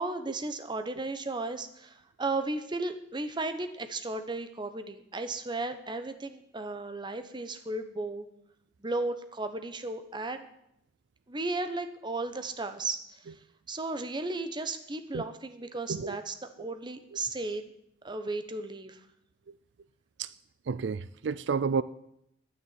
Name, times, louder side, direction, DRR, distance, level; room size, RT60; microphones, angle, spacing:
voice 1, 0.0-8.3 8.8-10.4 11.3-13.0 13.7-17.7 18.0-19.0, right 2 dB, 25° right, 9 dB, 1.0 m, -35 dB
voice 2, 20.7-21.8, right 5 dB, 75° right, 17 dB, 0.4 m, -30 dB
9.6 x 9.2 x 9.6 m, 0.77 s
head